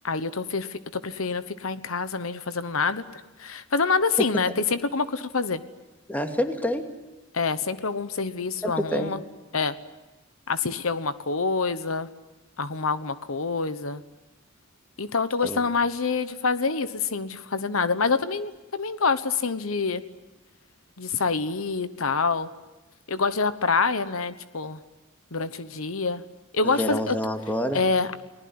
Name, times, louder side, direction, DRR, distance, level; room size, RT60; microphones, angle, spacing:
voice 1, 0.0-5.6 7.3-9.2 9.5-9.7 10.5-12.1 12.6-14.0 15.0-20.0 21.0-22.5 23.1-24.8 25.3-26.2 26.5-27.2 27.7-28.1, left 4 dB, 80° left, 12 dB, 1.1 m, -26 dB
voice 2, 6.1-6.9 8.6-9.1 15.4-15.6 26.6-27.8, equal, 10° left, 5 dB, 2.4 m, -27 dB
29.5 x 20.0 x 9.6 m, 1.1 s
head